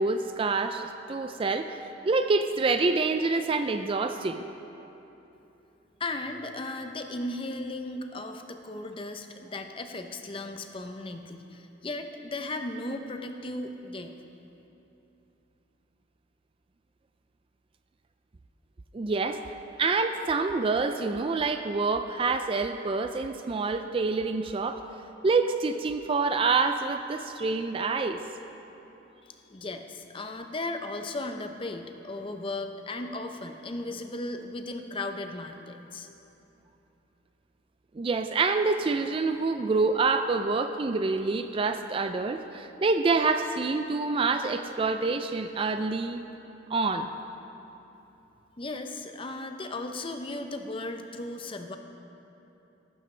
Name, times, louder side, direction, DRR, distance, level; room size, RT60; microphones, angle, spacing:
voice 1, 0.0-1.8 2.0-4.4 18.9-19.4 19.8-24.8 25.2-28.2 38.0-46.2 46.7-47.1, right 4 dB, 30° right, 8 dB, 0.3 m, -27 dB
voice 2, 6.0-14.2 29.2-36.1 48.6-51.8, left 2 dB, 25° left, 6 dB, 0.6 m, -36 dB
15.0 x 12.5 x 3.3 m, 3.0 s
head